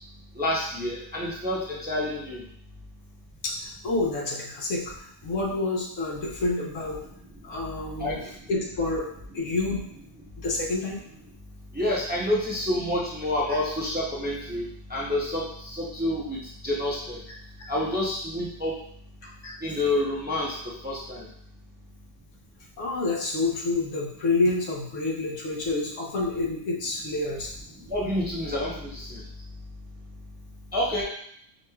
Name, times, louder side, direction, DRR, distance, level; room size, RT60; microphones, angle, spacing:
voice 1, 0.3-2.4 8.0-8.3 11.7-17.2 17.6-18.7 19.4-21.3 27.9-29.2 30.7-31.0, left 1 dB, 10° right, -5 dB, 0.5 m, -28 dB
voice 2, 3.8-4.9 5.2-7.0 7.4-8.2 8.5-9.1 9.3-9.8 10.4-11.0 22.8-27.5, left 2 dB, 90° left, -2 dB, 1.2 m, -28 dB
4.6 x 3.1 x 2.3 m, 0.67 s
omnidirectional pair, 1.2 m